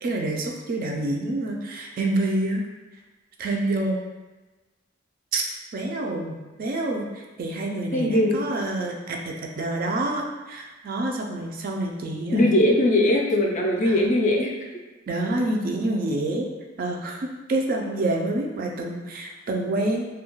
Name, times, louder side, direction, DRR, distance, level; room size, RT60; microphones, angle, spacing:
voice 1, 0.0-2.6 3.4-4.0 5.3-5.4 5.7-12.4 13.8-13.9 15.1-16.5 16.8-20.0, right 2 dB, 45° right, 1 dB, 0.3 m, -27 dB
voice 2, 7.9-8.4 12.3-14.5, left 1 dB, 40° left, 0 dB, 0.4 m, -20 dB
2.3 x 2.1 x 2.9 m, 1.2 s
head